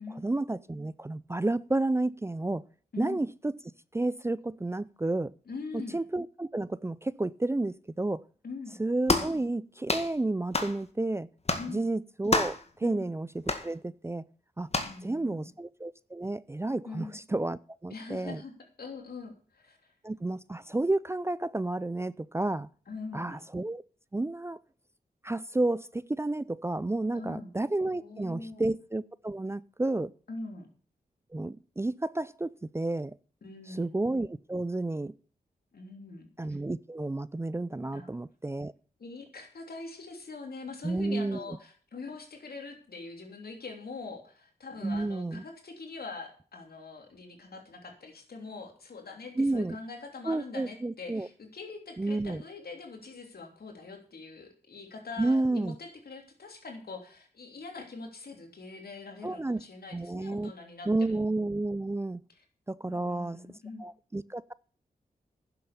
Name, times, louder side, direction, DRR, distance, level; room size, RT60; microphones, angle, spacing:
voice 1, 0.1-2.6 3.0-3.5 3.9-5.3 5.7-8.2 8.8-11.3 11.7-14.3 14.6-14.7 15.0-18.4 20.0-22.7 23.1-23.8 24.1-24.6 25.2-30.1 31.3-33.1 33.7-35.1 36.4-38.7 40.8-41.4 44.8-45.4 49.4-49.8 50.2-51.3 52.0-52.4 55.2-55.8 59.2-59.6 59.9-60.5 60.9-62.2 62.7-63.4 63.8-64.5, right 2 dB, 15° right, 0.4 m, -31 dB
voice 2, 2.9-3.2 5.5-6.0 8.4-8.7 11.6-11.8 12.8-13.1 14.8-15.5 16.8-17.2 17.9-19.8 22.9-23.4 27.1-27.5 27.9-28.7 30.3-30.7 33.4-33.9 35.7-36.3 37.9-38.2 39.0-61.2 62.9-63.8, left 3 dB, 70° left, 3.1 m, -43 dB
sound 1, 9.1-9.4 9.9-10.1 10.5-10.8 11.5-11.7 12.3-12.6 13.5-13.7 14.7-15.0, left 3 dB, 40° left, 1.9 m, -28 dB
10.5 x 7.7 x 7.1 m
cardioid pair, 50°, 16 cm